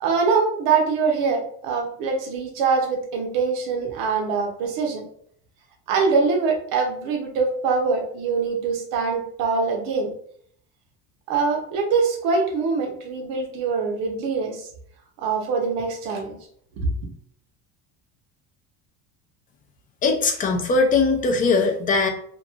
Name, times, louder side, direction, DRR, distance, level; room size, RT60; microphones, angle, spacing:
voice 1, 0.0-5.0 5.9-10.1 11.3-14.7 15.2-16.4 16.8-16.9, right 4 dB, 75° right, 2 dB, 0.7 m, -23 dB
voice 2, 20.0-22.1, left 3 dB, 25° left, 3 dB, 0.4 m, -20 dB
2.9 x 2.3 x 2.3 m, 0.62 s
cardioid pair, 135°, 32 cm